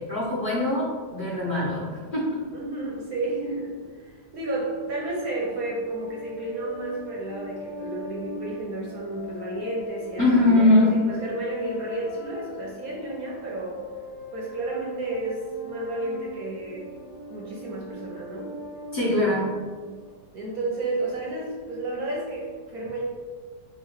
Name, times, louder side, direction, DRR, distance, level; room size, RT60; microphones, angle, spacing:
voice 1, 0.0-2.4 10.2-10.9 18.9-19.5, left 2 dB, 35° left, -9 dB, 1.1 m, -22 dB
voice 2, 2.5-13.8 14.3-16.8 17.3-18.5 20.3-23.0, right 2 dB, 65° right, -2 dB, 1.0 m, -32 dB
sound 1, 4.7-20.1, left 1 dB, 85° left, 1.3 m, -42 dB
4.9 x 2.7 x 3.0 m, 1.5 s
omnidirectional pair, 1.8 m